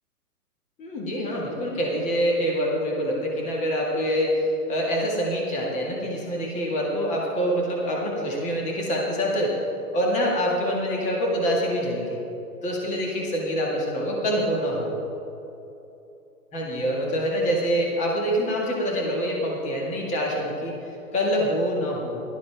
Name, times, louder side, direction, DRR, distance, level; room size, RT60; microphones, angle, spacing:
voice 1, 0.8-9.6 9.9-12.2 12.6-14.9 16.5-22.2, equal, 15° left, -2 dB, 1.8 m, -25 dB
16.0 x 12.5 x 3.4 m, 2.9 s
hypercardioid pair, 145°, 47 cm